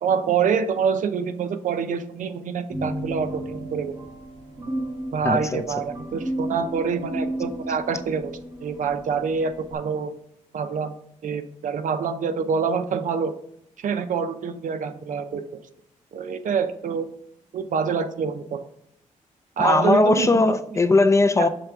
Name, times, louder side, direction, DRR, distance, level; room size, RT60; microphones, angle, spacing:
voice 1, 0.0-3.9 5.1-8.3 8.6-10.1 10.5-10.9 11.2-13.3 13.8-15.5 16.1-17.1 17.5-18.7 19.6-20.4 21.4-21.5, right 6 dB, 70° right, 0.6 m, -26 dB
sound 1, 2.7-9.7, right 1 dB, 30° right, 1.5 m, -33 dB
voice 2, 5.2-5.6 19.6-21.5, left 3 dB, 20° left, 0.4 m, -19 dB
6.6 x 3.3 x 5.9 m
wide cardioid pair, 130°, 14 cm